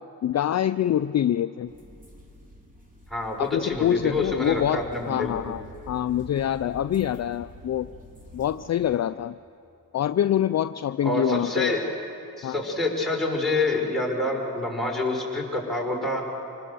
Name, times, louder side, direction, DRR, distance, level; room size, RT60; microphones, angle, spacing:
voice 1, 0.0-1.7 3.4-7.9 8.3-9.3 9.9-11.7 12.4-12.6, left 11 dB, 45° left, 12 dB, 0.4 m, -25 dB
sound 1, 1.7-9.0, left 1 dB, 20° right, 3.3 m, -47 dB
voice 2, 3.1-5.4 11.0-11.8 12.4-16.2, left 2 dB, ahead, 0 dB, 5.1 m, -27 dB
26.0 x 20.0 x 7.0 m, 2.8 s
cardioid pair, 80°, 36 cm